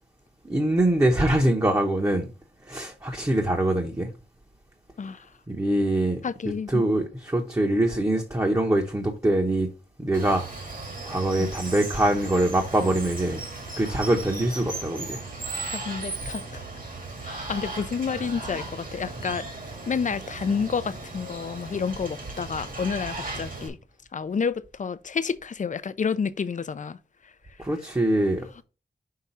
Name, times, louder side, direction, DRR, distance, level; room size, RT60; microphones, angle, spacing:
voice 1, 0.4-2.3 2.6-4.1 5.5-6.2 6.7-9.7 10.0-10.5 11.1-13.4 13.8-15.2 27.6-28.6, right 1 dB, 15° right, 0.9 m, -23 dB
voice 2, 6.2-6.8 11.4-11.5 15.7-16.6 17.2-19.5 19.9-23.8 24.1-27.0, left 6 dB, 45° left, 0.4 m, -29 dB
Water, 10.1-23.7, right 3 dB, 50° right, 1.7 m, -36 dB
5.7 x 3.6 x 5.4 m
wide cardioid pair, 115°, 18 cm